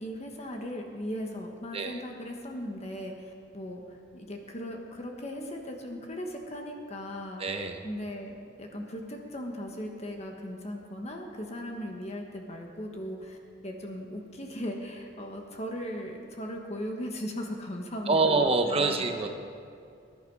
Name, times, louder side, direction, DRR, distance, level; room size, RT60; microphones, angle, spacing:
voice 1, 0.0-7.5 7.8-19.1, equal, 35° left, 2 dB, 1.4 m, -38 dB
voice 2, 7.4-7.8 18.1-19.3, right 3 dB, 30° right, 5 dB, 1.1 m, -26 dB
20.5 x 11.0 x 4.8 m, 2.4 s
head